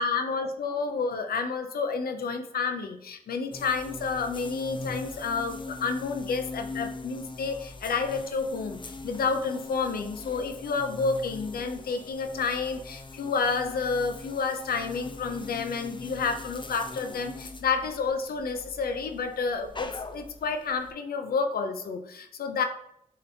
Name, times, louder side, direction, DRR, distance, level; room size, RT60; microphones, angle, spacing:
voice 1, 0.0-22.6, left 4 dB, 90° left, 6 dB, 0.5 m, -30 dB
sound 1, 3.5-20.9, left 3 dB, 35° left, 0.5 m, -41 dB
6.3 x 2.9 x 2.7 m, 0.72 s
cardioid pair, 45°, 15 cm